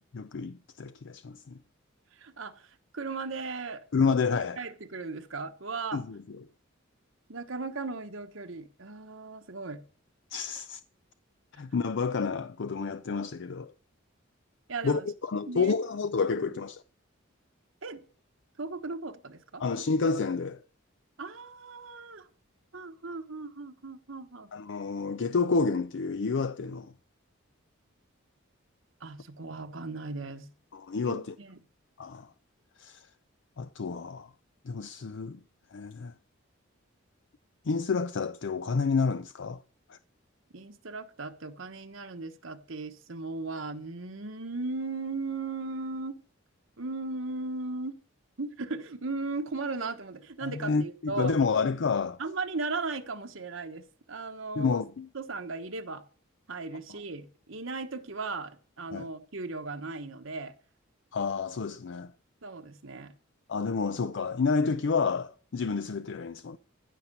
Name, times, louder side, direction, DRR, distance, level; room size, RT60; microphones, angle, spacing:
voice 1, 0.1-1.6 3.9-4.6 5.9-6.2 10.3-10.8 11.6-13.7 14.8-16.8 19.6-20.6 24.5-26.9 30.7-31.3 32.0-32.3 32.8-33.0 33.6-34.3 34.7-35.4 35.7-36.1 37.7-39.6 39.9-40.0 50.4-52.2 54.6-55.1 56.9-57.0 58.9-59.1 61.1-62.1 63.5-66.6, left 4 dB, 60° left, 0.5 m, -29 dB
voice 2, 2.2-4.2 4.6-6.0 7.3-9.8 14.7-15.1 15.5-15.8 16.4-16.5 17.8-18.0 18.6-19.6 21.2-22.3 22.7-24.5 29.0-30.5 31.0-31.6 40.5-46.2 46.8-48.0 48.4-51.3 52.2-54.8 55.1-56.0 56.5-60.5 62.4-63.1, right 3 dB, 70° right, 1.2 m, -37 dB
15.5 x 5.8 x 6.7 m
head